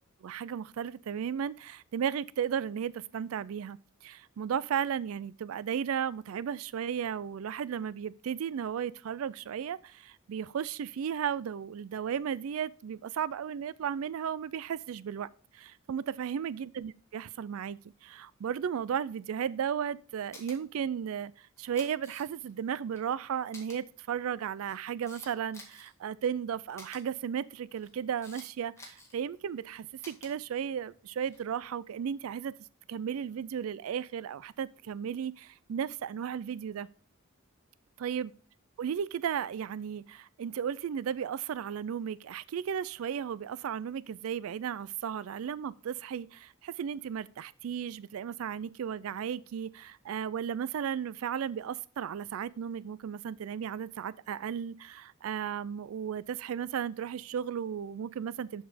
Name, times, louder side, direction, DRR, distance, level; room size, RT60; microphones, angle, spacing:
voice 1, 0.2-3.8 4.0-15.3 15.5-32.5 32.9-36.9 38.0-38.3 38.8-58.6, right 8 dB, 85° right, 0.4 m, -35 dB
Camera, 20.3-20.6 21.6-22.5 22.9-23.0 23.5-23.8 24.5-25.9 26.8-27.0 27.7-28.5 28.8-29.2 30.0-30.3 31.2-31.5, left 2 dB, 15° left, 2.0 m, -50 dB
6.8 x 6.5 x 5.0 m
head